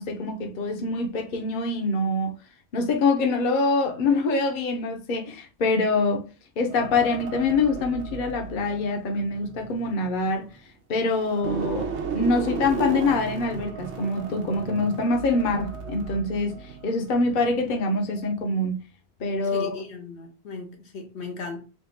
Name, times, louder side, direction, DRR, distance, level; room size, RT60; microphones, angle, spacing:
voice 1, 0.0-2.4 2.7-6.3 6.6-10.5 10.9-18.8 19.2-19.7, left 3 dB, 50° left, 0.8 m, -25 dB
sound 1, 6.7-10.7 11.1-17.8 18.1-18.4, right 5 dB, 90° right, 1.1 m, -35 dB
voice 2, 19.5-21.6, left 4 dB, 75° left, 1.2 m, -37 dB
3.5 x 2.4 x 4.0 m
omnidirectional pair, 1.1 m